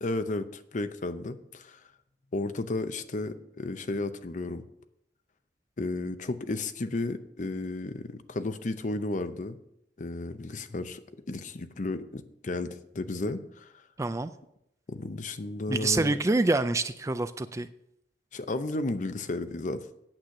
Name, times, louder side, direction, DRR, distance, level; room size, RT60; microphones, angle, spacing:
voice 1, 0.0-1.8 2.3-4.6 5.8-9.6 10.0-11.0 11.3-13.7 14.9-16.2 18.3-19.9, left 2 dB, 45° left, 10 dB, 0.7 m, -33 dB
voice 2, 14.0-14.3 15.7-17.7, right 2 dB, 15° right, 12 dB, 0.4 m, -26 dB
8.9 x 8.1 x 5.9 m, 0.78 s
head